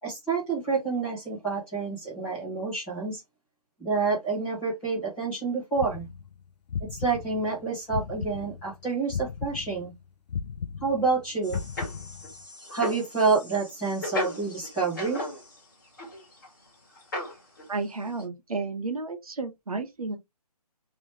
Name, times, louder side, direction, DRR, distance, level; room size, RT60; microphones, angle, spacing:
voice 1, 0.0-3.2 3.8-6.1 6.9-9.9 10.8-11.6 12.7-15.2, right 4 dB, 5° left, 0.9 m, -28 dB
sound 1, 5.8-8.7 9.1-12.4, left 6 dB, 90° left, 0.5 m, -35 dB
sound 2, 11.4-15.6 15.9-16.5 17.0-17.7 18.0-18.2, left 1 dB, 30° left, 1.6 m, -36 dB
voice 2, 17.7-20.2, right 3 dB, 60° right, 1.0 m, -32 dB
3.0 x 3.0 x 3.2 m
hypercardioid pair, 175°, 20 cm